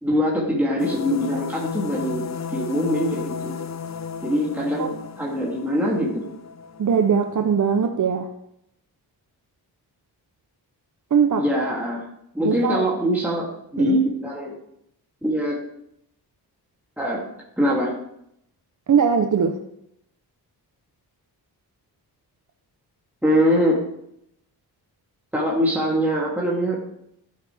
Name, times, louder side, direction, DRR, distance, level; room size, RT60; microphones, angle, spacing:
voice 1, 0.0-3.5 4.2-6.2 11.4-12.0 12.3-14.5 15.2-15.6 17.0-17.2 17.6-17.9 23.2-23.8 25.3-27.0, equal, 5° right, -5 dB, 2.8 m, -23 dB
sound 1, 0.8-7.8, left 6 dB, 45° left, 0.8 m, -34 dB
voice 2, 6.8-8.3 11.1-11.4 12.4-12.9 13.8-14.0 18.9-19.6, right 7 dB, 50° right, 6 dB, 0.8 m, -20 dB
15.5 x 8.9 x 3.5 m, 0.76 s
wide cardioid pair, 115°, 40 cm